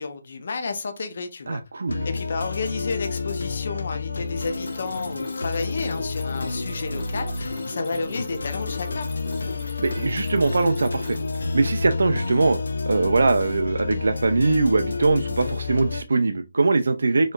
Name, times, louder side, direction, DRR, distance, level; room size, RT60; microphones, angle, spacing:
voice 1, 0.0-1.6 2.0-9.1, left 4 dB, 40° left, 0.5 m, -31 dB
voice 2, 1.5-2.1 9.8-11.2 11.5-12.6 12.9-17.3, right 3 dB, 65° right, 0.3 m, -22 dB
sound 1, 1.9-16.0, left 3 dB, 85° left, 0.6 m, -30 dB
Mechanisms, 4.2-11.6, left 2 dB, 15° left, 1.7 m, -39 dB
4.2 x 2.9 x 2.2 m
hypercardioid pair, 180°, 0 cm